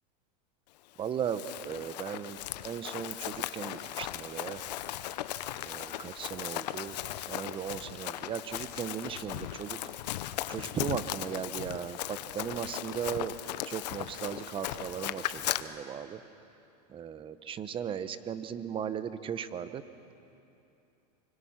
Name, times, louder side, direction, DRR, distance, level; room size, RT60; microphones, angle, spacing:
Run, 1.0-15.6, left 14 dB, 80° left, 0.9 m, -37 dB
voice 1, 1.0-4.6 5.6-7.0 7.3-9.9 10.5-13.4 13.7-16.2 16.9-19.8, right 8 dB, 25° right, 12 dB, 0.9 m, -37 dB
25.0 x 25.0 x 5.9 m, 2.8 s
supercardioid pair, 135°, 21 cm